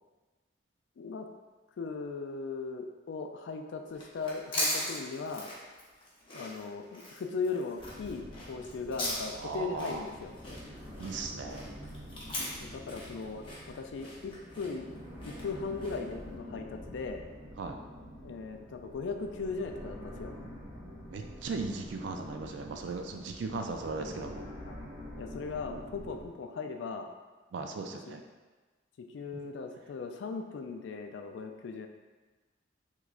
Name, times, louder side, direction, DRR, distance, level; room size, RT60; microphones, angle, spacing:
voice 1, 1.0-1.3 1.8-5.5 6.3-10.3 12.6-14.9 15.3-17.2 18.2-20.3 24.6-24.8 25.2-27.1 28.0-28.1 29.0-31.9, left 4 dB, 75° left, 5 dB, 0.3 m, -38 dB
sound 1, 3.9-16.1, left 1 dB, 30° left, 0.7 m, -39 dB
sound 2, 7.8-26.3, equal, 15° right, 0.7 m, -47 dB
voice 2, 9.4-10.0 11.0-11.7 17.6-17.7 21.1-24.5 27.5-28.2, right 3 dB, 70° right, 4 dB, 0.3 m, -37 dB
3.5 x 3.1 x 2.4 m, 1.3 s
head